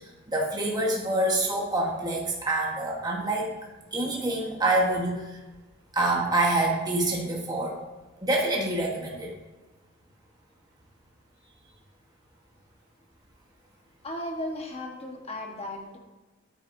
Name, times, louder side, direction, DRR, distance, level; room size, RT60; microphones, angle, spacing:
voice 1, 0.3-3.5 3.9-5.2 5.9-7.7 8.2-9.3, right 2 dB, 20° right, -2 dB, 1.4 m, -26 dB
voice 2, 14.0-16.0, left 1 dB, 30° left, 1 dB, 1.4 m, -35 dB
10.0 x 8.9 x 2.7 m, 1.2 s
head